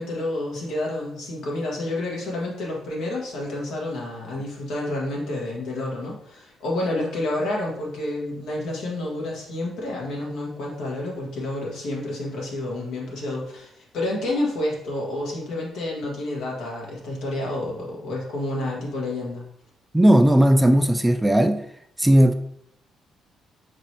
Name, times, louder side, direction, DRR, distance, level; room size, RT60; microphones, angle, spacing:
voice 1, 0.0-19.4, left 1 dB, 80° left, 1.5 m, -29 dB
voice 2, 19.9-21.6 22.0-22.3, right 1 dB, 10° right, 0.3 m, -16 dB
5.3 x 3.3 x 2.8 m
cardioid pair, 90°, 0 cm